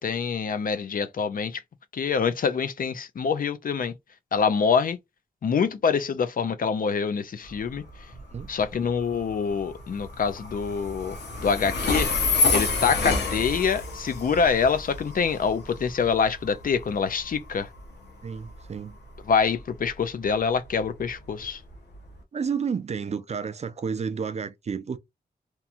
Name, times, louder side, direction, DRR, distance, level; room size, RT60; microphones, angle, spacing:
voice 1, 0.0-1.6 1.9-3.9 4.3-5.0 5.4-7.8 8.5-12.1 12.5-17.7 19.3-21.6, left 6 dB, 55° left, 0.4 m, -25 dB
Train, 7.4-22.2, left 3 dB, 85° left, 0.8 m, -30 dB
voice 2, 8.1-8.5 18.2-19.0 22.3-25.0, right 6 dB, 40° right, 0.4 m, -31 dB
2.9 x 2.3 x 2.4 m
wide cardioid pair, 140°, 17 cm